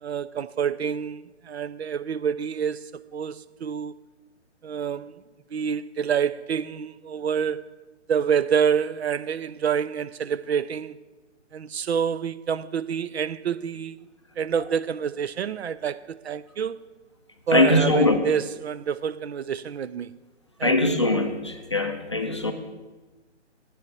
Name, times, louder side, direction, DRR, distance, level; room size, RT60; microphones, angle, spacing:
voice 1, 0.0-2.8 3.1-3.9 4.6-5.1 5.5-7.7 8.1-11.0 11.5-14.0 14.4-16.8 17.5-20.2 20.6-20.8, right 7 dB, 65° right, 0.5 m, -27 dB
voice 2, 17.5-18.2 20.6-22.5, left 2 dB, 25° left, 0.4 m, -21 dB
8.5 x 6.8 x 7.4 m
hypercardioid pair, 160°, 36 cm